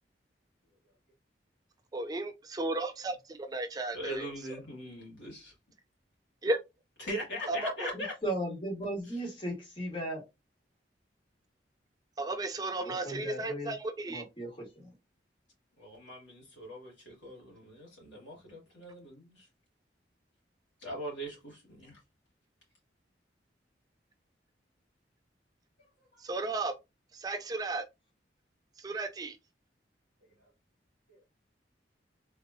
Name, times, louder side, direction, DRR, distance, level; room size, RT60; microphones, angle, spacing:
voice 1, 1.9-4.3 6.4-6.6 7.5-7.9 12.2-14.2 26.2-26.7 27.1-27.8 28.8-29.4, right 2 dB, 20° right, 0.3 m, -34 dB
voice 2, 3.9-5.5 7.0-8.1 15.8-19.5 20.8-22.0 26.1-26.2 31.1-31.2, equal, 85° left, 2.5 m, -41 dB
voice 3, 7.9-10.2 12.8-13.8 14.1-14.9, right 1 dB, 30° left, 1.5 m, -37 dB
3.7 x 3.0 x 2.5 m
head